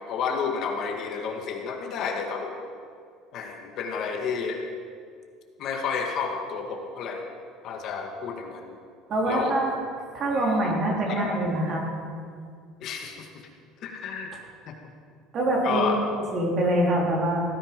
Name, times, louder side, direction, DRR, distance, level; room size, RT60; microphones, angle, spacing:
voice 1, 0.0-2.6 3.3-4.6 5.6-7.2 7.6-8.7 9.3-9.6 10.3-10.7 11.1-11.3 12.8-13.3 13.8-14.4 14.7-14.8 15.6-16.0, left 6 dB, 45° left, 2 dB, 2.1 m, -31 dB
voice 2, 9.1-9.7 10.1-11.8 15.3-17.4, right 1 dB, 35° right, -1 dB, 3.6 m, -24 dB
18.5 x 14.5 x 5.3 m, 2.2 s
cardioid pair, 160°, 0 cm